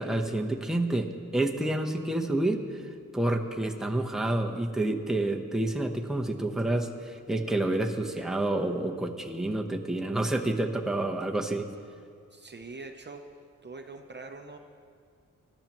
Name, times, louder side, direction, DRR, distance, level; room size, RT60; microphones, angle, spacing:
voice 1, 0.0-2.8 3.1-11.7, right 1 dB, ahead, 1 dB, 1.0 m, -29 dB
voice 2, 12.3-13.2 13.6-14.6, right 3 dB, 35° right, 4 dB, 0.7 m, -43 dB
21.0 x 12.0 x 3.0 m, 2.3 s
wide cardioid pair, 90°, 31 cm